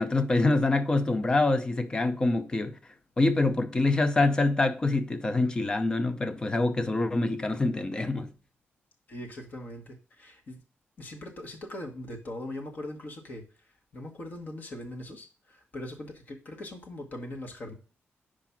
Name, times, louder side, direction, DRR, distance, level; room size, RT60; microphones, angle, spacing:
voice 1, 0.0-2.8 3.2-8.3, left 2 dB, 20° left, 0.6 m, -25 dB
voice 2, 9.1-10.6 11.0-17.7, left 1 dB, 45° left, 1.4 m, -41 dB
5.1 x 4.8 x 5.8 m
wide cardioid pair, 175°, 4 cm